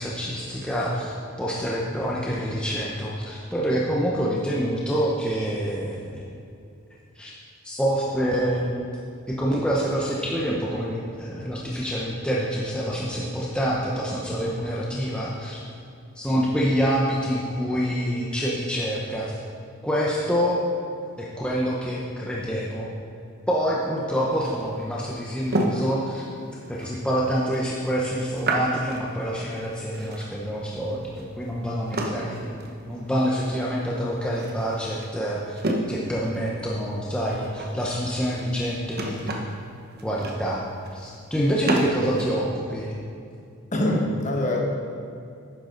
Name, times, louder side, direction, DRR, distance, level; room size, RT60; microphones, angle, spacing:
voice 1, 0.0-6.2 7.2-7.3 7.6-8.7 9.3-15.6 16.1-19.3 19.8-20.6 21.2-22.9 23.5-26.2 26.7-35.6 35.9-39.4 40.0-40.6 40.9-43.0, equal, 5° left, -5 dB, 0.9 m, -26 dB
sound 1, 24.2-42.3, right 1 dB, 45° right, 1.1 m, -32 dB
voice 2, 43.7-44.6, left 1 dB, 35° left, -1 dB, 1.4 m, -24 dB
11.5 x 9.4 x 4.0 m, 2.5 s
head